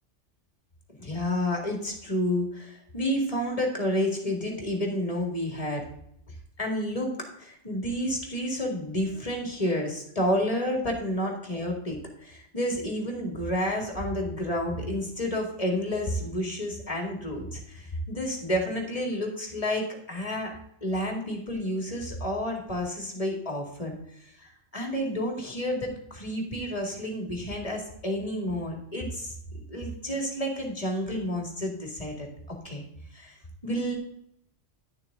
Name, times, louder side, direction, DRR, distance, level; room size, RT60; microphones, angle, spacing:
voice 1, 1.0-5.8 6.6-20.5 20.8-24.0 24.4-29.3 29.7-32.8 33.1-33.4 33.6-34.0, equal, 30° left, 1 dB, 2.2 m, -30 dB
11.0 x 6.7 x 3.6 m, 0.74 s
omnidirectional pair, 1.3 m